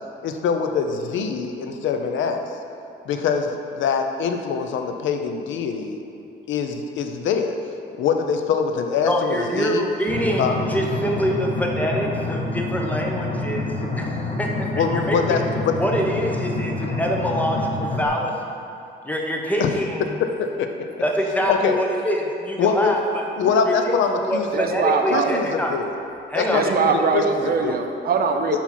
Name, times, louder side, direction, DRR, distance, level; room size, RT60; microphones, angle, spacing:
voice 1, 0.2-2.5 3.1-6.0 6.5-7.5 8.0-9.8 10.4-10.5 14.7-15.4 15.6-15.7 19.6-19.7 20.2-20.7 21.5-21.8 22.6-23.0 23.4-24.8 25.1-25.9 26.3-27.2 27.6-27.8, left 6 dB, 75° left, 5 dB, 0.5 m, -23 dB
voice 2, 9.0-15.4 15.8-18.3 19.0-20.2 21.0-23.2 23.7-23.8 24.2-25.7 26.3-26.7, equal, 10° left, 0 dB, 0.8 m, -25 dB
sound 1, 10.1-18.1, left 2 dB, 30° left, 1.0 m, -27 dB
voice 3, 24.5-25.4 26.5-28.6, right 5 dB, 50° right, 5 dB, 0.5 m, -22 dB
5.5 x 4.5 x 4.3 m, 2.7 s
cardioid pair, 90°, 20 cm